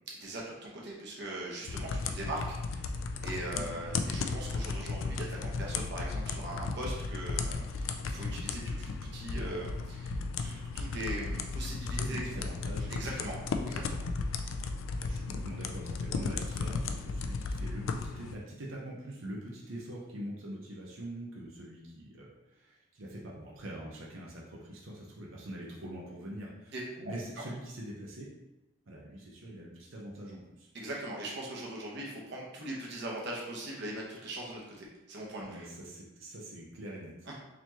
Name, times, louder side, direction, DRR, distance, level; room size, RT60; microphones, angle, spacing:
voice 1, 0.0-2.8 3.2-10.2 10.4-12.5 12.9-13.4 13.6-14.0 26.7-27.1 30.7-35.7 37.3-37.4, right 1 dB, 60° right, -3 dB, 0.9 m, -40 dB
Computer Keyboard Keys, 1.7-18.3, left 4 dB, 80° left, 0.3 m, -35 dB
voice 2, 12.0-13.3 15.0-26.8 27.0-28.3 28.9-30.7 35.4-37.3, right 1 dB, 85° right, -4 dB, 0.8 m, -43 dB
4.1 x 3.1 x 2.8 m, 1.0 s
head